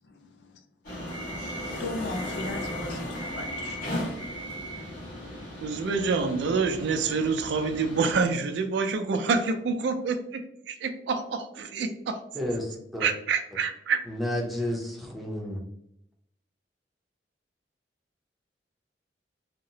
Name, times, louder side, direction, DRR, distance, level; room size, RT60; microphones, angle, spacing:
voice 1, 0.0-0.5 1.8-4.2, left 2 dB, 70° left, 0.4 m, -38 dB
sound 1, 0.8-8.2, equal, 55° left, 1.3 m, -36 dB
voice 2, 5.6-10.4 10.7-12.2 13.0-14.0, right 4 dB, 70° right, 0.3 m, -27 dB
voice 3, 12.3-13.1 14.1-15.6, left 1 dB, ahead, 0.5 m, -31 dB
2.8 x 2.0 x 2.6 m
head